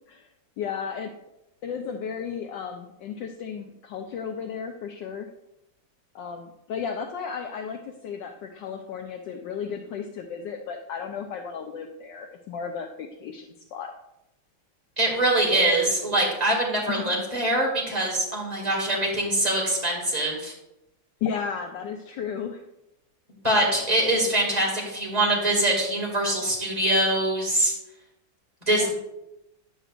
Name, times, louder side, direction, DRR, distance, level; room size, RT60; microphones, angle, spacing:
voice 1, 0.6-1.1 1.6-5.3 6.1-13.9 16.9-17.2 21.2-22.6 28.7-28.9, left 7 dB, 75° left, 4 dB, 1.2 m, -34 dB
voice 2, 15.0-20.5 23.4-27.7 28.7-28.9, right 1 dB, 20° right, -3 dB, 2.2 m, -23 dB
9.7 x 8.0 x 2.5 m, 0.89 s
omnidirectional pair, 2.1 m